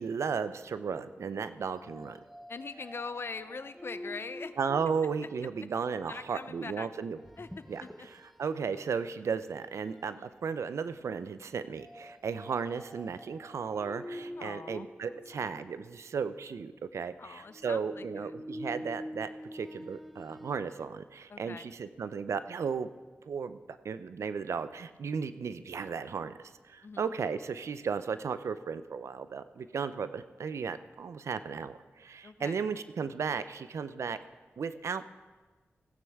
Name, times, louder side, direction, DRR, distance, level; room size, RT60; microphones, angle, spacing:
voice 1, 0.0-2.2 4.6-7.2 7.7-22.9 23.3-26.4 26.7-34.2 34.6-35.2, right 6 dB, 90° right, 13 dB, 0.4 m, -35 dB
sound 1, 0.8-6.1 7.2-8.4 8.9-9.1 9.6-10.1 11.8-16.2 17.5-20.6, equal, ahead, 0.8 m, -46 dB
voice 2, 2.5-4.5 6.1-6.9 7.4-7.5 7.8-7.9 10.1-10.3 14.4-14.9 15.4-15.6 17.2-18.3 21.3-21.8 26.8-27.0 32.2-32.6, left 4 dB, 55° left, 13 dB, 0.5 m, -42 dB
16.5 x 9.3 x 3.5 m, 1.3 s
wide cardioid pair, 70°, 5 cm